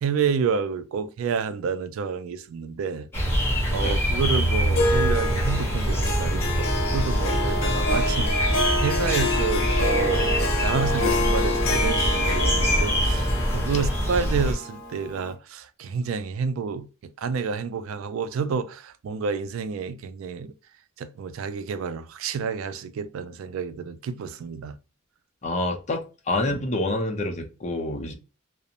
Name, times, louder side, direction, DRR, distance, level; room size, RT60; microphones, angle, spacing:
voice 1, 0.0-3.1 3.7-16.9 17.2-20.5 21.0-24.8, right 5 dB, 75° right, 0.3 m, -29 dB
sound 1, 3.1-14.5, equal, 10° left, 0.9 m, -24 dB
Harp, 4.7-15.3, left 2 dB, 85° left, 0.7 m, -28 dB
voice 2, 25.4-28.1, left 2 dB, 35° left, 0.5 m, -27 dB
2.4 x 2.0 x 2.7 m
head